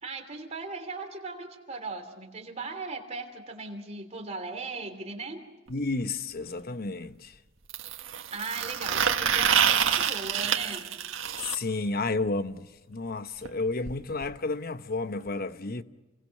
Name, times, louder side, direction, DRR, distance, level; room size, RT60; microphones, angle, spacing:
voice 1, 0.0-5.4 8.3-11.1, right 3 dB, 35° right, 3.1 m, -38 dB
voice 2, 5.7-7.3 11.4-15.8, left 3 dB, 50° left, 0.9 m, -31 dB
sound 1, 5.7-5.8 7.7-11.5 13.5-13.6 13.9-14.0 14.2-14.3 15.3-15.4, right 8 dB, 80° right, 1.7 m, -27 dB
29.5 x 22.5 x 6.6 m
head